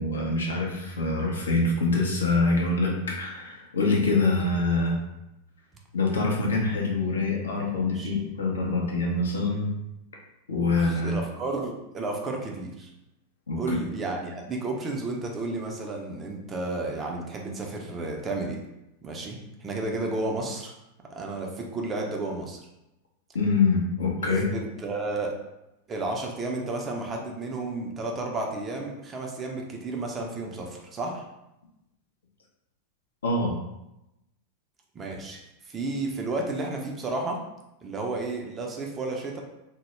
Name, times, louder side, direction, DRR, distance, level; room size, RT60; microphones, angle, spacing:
voice 1, 0.0-5.0 5.9-9.7 10.5-11.2 13.5-13.8 23.3-24.5 33.2-33.5, left 3 dB, 70° left, -2 dB, 0.5 m, -25 dB
voice 2, 10.7-12.9 13.6-18.6 19.0-20.7 21.1-22.6 24.5-25.3 25.9-31.2 34.9-35.4 35.7-37.4 37.8-39.4, right 2 dB, 20° right, 1 dB, 0.4 m, -32 dB
2.1 x 2.0 x 3.0 m, 0.90 s
figure-of-eight pair, 90°, 0 cm